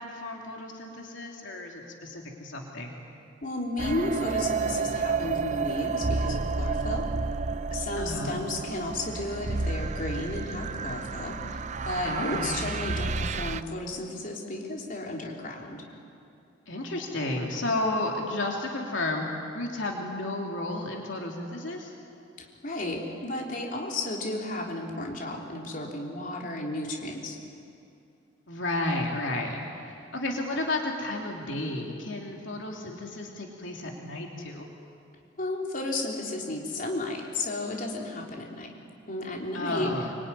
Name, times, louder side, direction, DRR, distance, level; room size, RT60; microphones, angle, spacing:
voice 1, 0.0-2.9 8.0-8.4 12.0-12.5 16.7-21.9 28.5-29.6 29.9-34.7 39.5-40.1, left 2 dB, 70° left, 0 dB, 3.1 m, -32 dB
voice 2, 3.4-7.1 7.7-15.8 22.4-27.4 35.4-38.7 39.1-39.9, left 2 dB, 45° left, -1 dB, 3.6 m, -33 dB
sound 1, 3.8-13.6, right 4 dB, 35° right, 0.7 m, -31 dB
24.5 x 24.0 x 9.9 m, 2.6 s
head